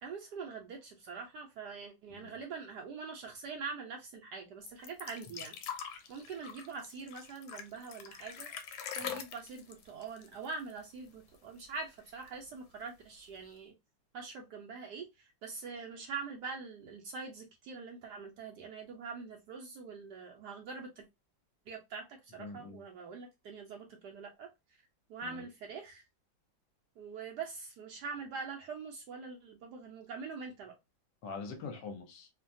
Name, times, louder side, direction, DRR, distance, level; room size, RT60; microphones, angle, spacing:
voice 1, 0.0-5.5 6.1-8.5 9.0-13.7 14.1-21.1 21.7-24.5 25.1-26.0 27.0-30.8, right 5 dB, 75° right, 2 dB, 1.0 m, -44 dB
sound 1, 4.7-11.1 11.3-11.4 11.8-12.5 13.3-13.4, left 8 dB, 90° left, 1.4 m, -44 dB
voice 2, 22.4-22.8 25.2-25.5 31.2-32.3, left 4 dB, 70° left, 5 dB, 1.3 m, -44 dB
3.2 x 2.1 x 2.5 m, 0.23 s
omnidirectional pair, 2.1 m